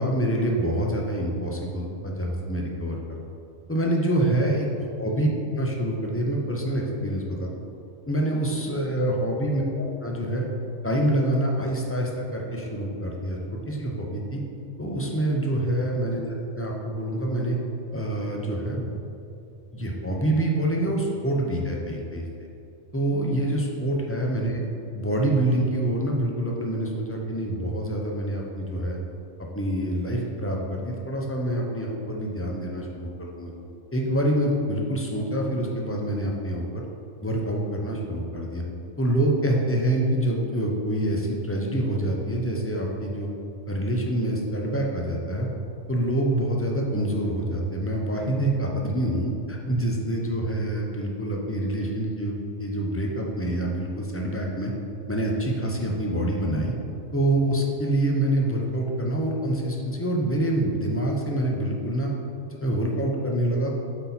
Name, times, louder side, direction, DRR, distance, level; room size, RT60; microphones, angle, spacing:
voice 1, 0.0-3.0 3.7-4.7 5.0-5.3 5.5-7.5 8.1-10.4 10.8-14.4 14.8-16.2 16.5-17.6 17.9-18.9 19.7-22.3 22.9-24.6 24.9-29.0 29.4-33.5 33.9-36.8 37.2-38.6 39.0-43.3 43.7-45.5 45.9-54.7 55.1-56.7 57.1-62.1 62.5-63.7, right 1 dB, 20° left, -1 dB, 0.4 m, -26 dB
8.1 x 4.1 x 4.1 m, 2.6 s
omnidirectional pair, 1.4 m